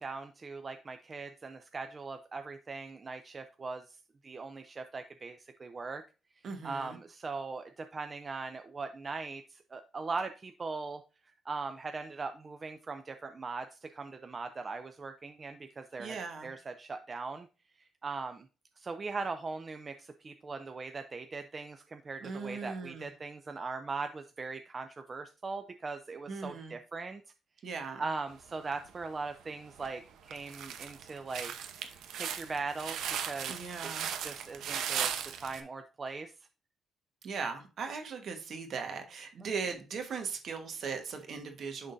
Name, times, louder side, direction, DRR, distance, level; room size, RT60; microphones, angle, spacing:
voice 1, 0.0-4.0 4.2-6.0 6.6-11.0 11.4-16.2 16.4-17.5 17.8-18.5 18.8-27.2 28.0-31.5 31.8-33.6 33.8-35.1 35.4-36.3, right 4 dB, 35° right, 8 dB, 0.5 m, -40 dB
voice 2, 6.4-7.0 16.0-16.5 22.2-23.1 26.3-26.7 27.6-28.1 33.5-34.1 37.2-41.9, right 5 dB, 60° right, 5 dB, 1.3 m, -39 dB
sound 1, 28.7-29.3 29.8-29.9 30.3-35.6, right 8 dB, 80° right, 0.8 m, -37 dB
11.0 x 3.7 x 2.6 m, 0.32 s
cardioid pair, 90°, 0 cm